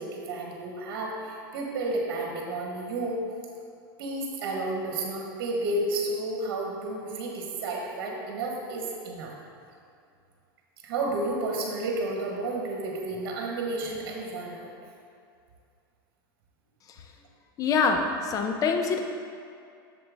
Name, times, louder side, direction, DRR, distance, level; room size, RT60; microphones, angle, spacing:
voice 1, 0.0-3.3 4.0-9.3 10.8-14.7, right 2 dB, 65° right, -1 dB, 1.3 m, -31 dB
voice 2, 17.6-19.0, left 5 dB, 30° left, 5 dB, 0.6 m, -25 dB
7.4 x 6.8 x 3.5 m, 2.4 s
supercardioid pair, 130°, 12 cm